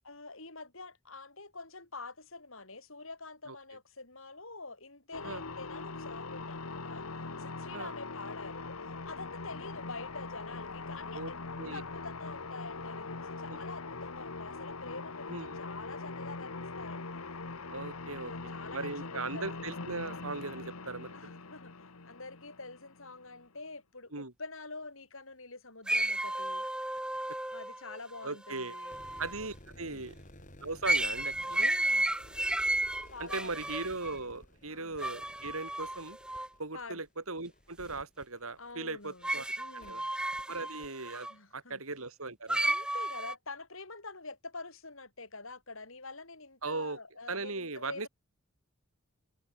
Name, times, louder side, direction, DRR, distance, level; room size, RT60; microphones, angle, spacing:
voice 1, 0.0-7.1 7.4-8.8 9.0-17.4 18.3-19.6 21.1-21.7 22.0-26.6 27.5-29.0 29.8-30.1 31.5-32.3 33.1-33.6 34.7-35.0 36.7-37.0 38.6-39.3 39.6-40.1 41.3-41.8 42.6-48.1, left 3 dB, 70° left, 6.6 m, -46 dB
sound 1, 5.1-23.4, left 3 dB, 85° left, 1.7 m, -42 dB
voice 2, 17.7-21.3 24.1-24.3 28.2-28.8 29.2-30.2 30.6-31.7 33.2-36.2 36.6-40.0 40.5-41.3 41.5-42.6 46.6-47.0 47.3-48.1, right 3 dB, 75° right, 3.5 m, -39 dB
sound 2, 25.9-29.5 30.8-34.2 35.0-36.5 39.2-41.3 42.5-43.4, right 1 dB, 5° right, 1.0 m, -33 dB
sound 3, 28.8-39.2 39.8-39.9 40.4-40.5 40.8-40.9, left 1 dB, 35° left, 6.7 m, -55 dB
head